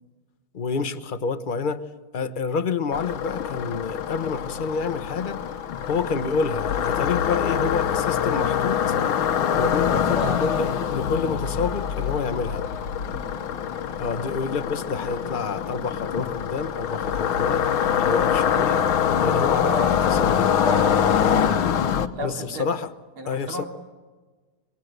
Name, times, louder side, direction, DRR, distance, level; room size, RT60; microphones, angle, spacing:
voice 1, 0.5-1.8 2.1-5.4 5.9-8.8 9.5-12.6 14.0-17.6 18.0-18.8 19.2-19.7 20.0-20.5 22.2-22.9 23.3-23.6, left 5 dB, 40° left, 11 dB, 0.7 m, -28 dB
sound 1, 2.9-22.1, left 8 dB, 75° left, 1.9 m, -24 dB
voice 2, 9.8-10.5 13.0-13.4 17.3-17.5 19.6-20.0 20.6-21.5 22.1-22.7 23.2-23.7, equal, 75° right, 3 dB, 3.6 m, -34 dB
26.5 x 22.0 x 8.0 m, 1.3 s
omnidirectional pair, 2.3 m